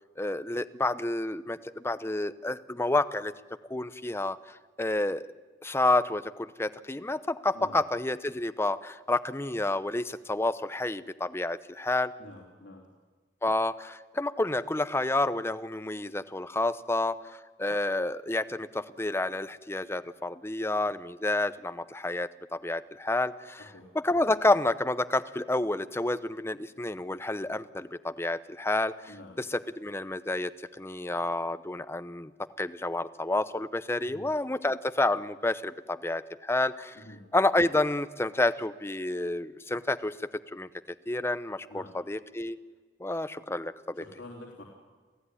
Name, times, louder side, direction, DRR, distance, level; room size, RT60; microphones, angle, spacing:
voice 1, 0.2-3.3 3.7-5.3 5.6-12.1 13.4-32.3 32.6-37.0 37.3-40.7 41.1-42.6 43.0-44.0, left 2 dB, 15° left, 12 dB, 0.8 m, -29 dB
voice 2, 12.2-12.9 23.6-23.9 29.1-29.4 34.0-34.3 37.0-37.2 41.7-42.0 44.0-44.6, left 1 dB, 85° left, -2 dB, 3.6 m, -47 dB
28.5 x 15.5 x 9.9 m, 1.4 s
head